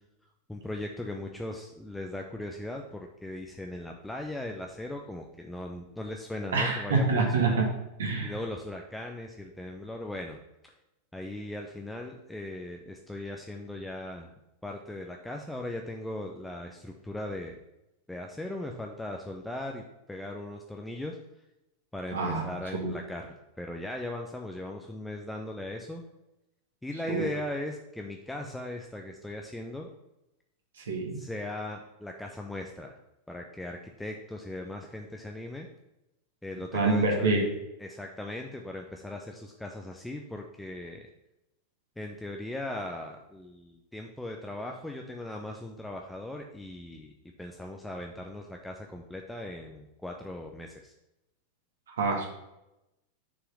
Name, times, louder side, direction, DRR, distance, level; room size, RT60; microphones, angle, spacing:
voice 1, 0.5-7.6 8.2-10.4 11.1-14.3 14.6-17.6 18.1-21.2 21.9-26.0 26.8-29.9 31.1-33.0 33.3-35.7 36.4-37.5 37.8-41.1 42.0-47.1 47.4-50.9, left 1 dB, 5° left, 2 dB, 0.6 m, -38 dB
voice 2, 6.5-7.7 8.0-8.3 22.1-22.4 22.8-22.9 27.1-27.2 30.8-31.2 36.7-37.4 51.9-52.3, right 3 dB, 65° right, 1 dB, 1.9 m, -26 dB
6.1 x 4.8 x 5.5 m, 0.91 s
figure-of-eight pair, 90°, 0 cm